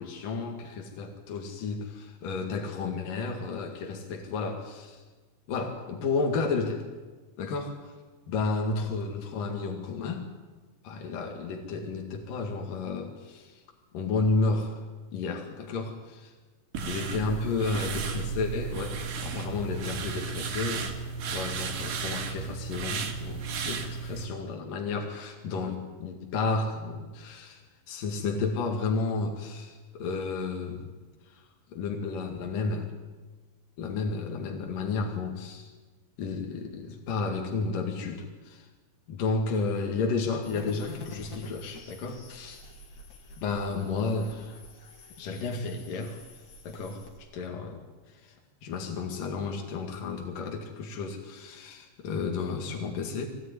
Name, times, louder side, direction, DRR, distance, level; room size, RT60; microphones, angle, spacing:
voice 1, 0.0-5.0 5.5-6.8 7.4-7.9 8.3-10.3 10.8-13.6 13.9-14.8 15.1-16.3 16.9-20.9 21.3-27.6 27.9-30.9 31.3-31.4 31.7-32.9 33.8-35.7 36.2-38.7 39.1-42.6 43.4-44.6 45.2-46.2 46.6-47.8 48.1-48.4 48.6-53.3, left 4 dB, 75° left, 2 dB, 3.8 m, -32 dB
sound 1, 16.7-24.3, right 5 dB, 85° right, 4.0 m, -34 dB
sound 2, 40.4-47.2, left 3 dB, 55° left, 4.0 m, -47 dB
23.0 x 17.5 x 9.8 m, 1.3 s
omnidirectional pair, 3.9 m